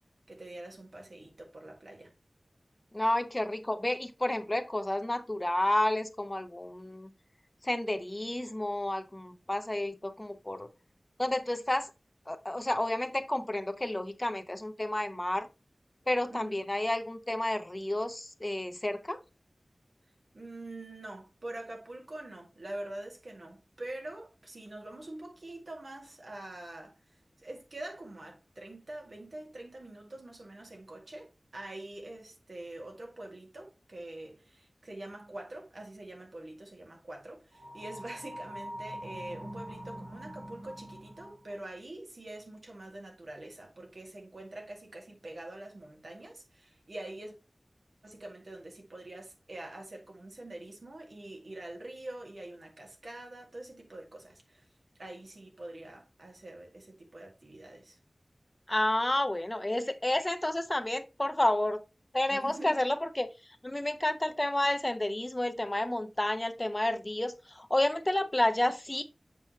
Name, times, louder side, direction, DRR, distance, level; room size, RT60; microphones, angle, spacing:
voice 1, 0.3-2.1 16.3-16.6 20.3-27.0 27.4-47.4 48.0-54.6 55.0-58.0 62.3-62.8, right 1 dB, 75° right, 2.1 m, -45 dB
voice 2, 2.9-7.1 7.6-10.7 11.2-11.9 12.3-15.5 16.1-19.2 58.7-61.8 62.1-69.0, left 1 dB, 30° left, 0.9 m, -30 dB
sound 1, 37.5-41.5, equal, 55° right, 3.3 m, -43 dB
7.5 x 5.2 x 2.9 m
wide cardioid pair, 45°, 0 cm